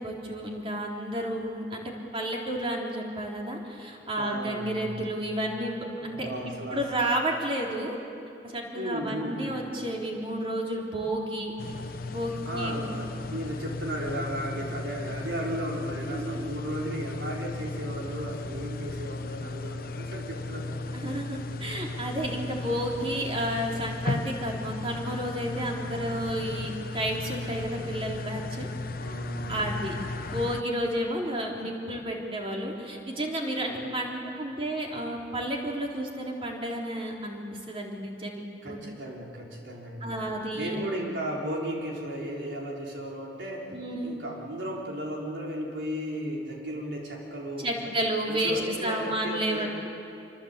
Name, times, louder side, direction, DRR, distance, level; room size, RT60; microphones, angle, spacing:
voice 1, 0.0-6.3 6.7-8.0 8.4-11.5 12.1-12.9 16.1-16.5 20.9-28.7 29.5-30.0 30.2-38.8 40.0-40.8 43.7-44.2 47.6-49.7, right 1 dB, 30° right, -1 dB, 3.8 m, -31 dB
voice 2, 4.2-4.9 6.0-6.8 8.7-9.6 12.5-21.3 29.0-29.9 33.6-34.0 38.6-40.0 40.5-43.7 44.0-47.9 48.3-49.7, equal, 80° right, -2 dB, 4.3 m, -35 dB
sound 1, 11.6-30.6, left 3 dB, 55° left, 0.8 m, -36 dB
26.5 x 24.5 x 8.3 m, 2.6 s
head